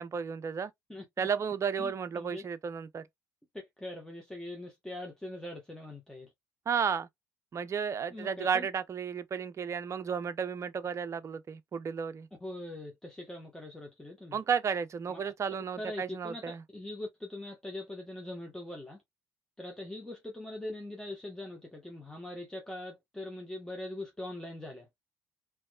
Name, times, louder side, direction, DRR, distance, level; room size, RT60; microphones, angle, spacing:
voice 1, 0.0-0.7 1.2-3.0 6.7-7.1 7.5-12.3 14.3-16.6, right 6 dB, 35° right, 0.6 m, -33 dB
voice 2, 0.9-1.3 1.8-2.4 3.8-6.3 8.1-8.7 12.4-14.4 15.1-15.3 15.8-19.0 19.6-24.9, left 1 dB, 5° left, 1.4 m, -42 dB
4.1 x 3.1 x 2.4 m
hypercardioid pair, 60°, 9 cm